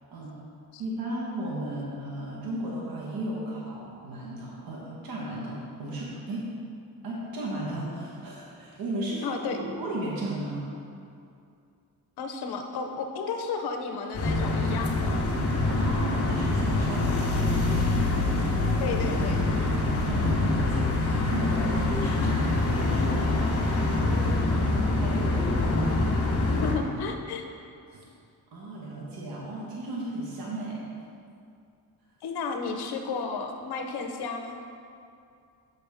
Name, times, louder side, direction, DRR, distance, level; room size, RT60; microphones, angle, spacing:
voice 1, 0.8-6.5 7.0-10.7 15.7-18.0 19.7-26.2 27.9-28.0 28.5-30.8, right 1 dB, 65° right, -4 dB, 1.3 m, -35 dB
voice 2, 9.2-9.6 12.2-15.2 18.8-19.6 26.5-27.5 32.2-34.6, left 4 dB, 80° left, 4 dB, 0.8 m, -33 dB
sound 1, 14.1-26.7, left 2 dB, 40° left, 1.2 m, -25 dB
6.9 x 6.7 x 3.5 m, 2.5 s
cardioid pair, 115°, 38 cm